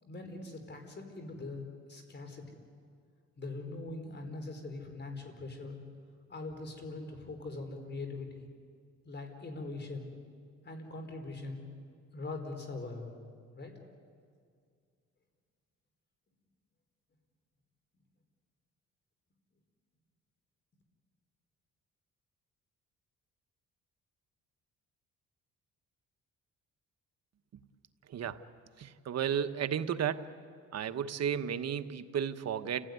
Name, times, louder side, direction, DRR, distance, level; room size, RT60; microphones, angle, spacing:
voice 1, 0.0-2.6 3.4-5.8 6.3-8.5 9.0-10.1 10.6-11.6 12.1-13.1 13.5-13.7, left 2 dB, 35° left, 5 dB, 4.6 m, -42 dB
voice 2, 28.1-28.4 28.8-30.3 30.7-32.9, right 8 dB, 60° right, 10 dB, 1.2 m, -33 dB
29.5 x 16.5 x 9.6 m, 2.1 s
cardioid pair, 90°, 30 cm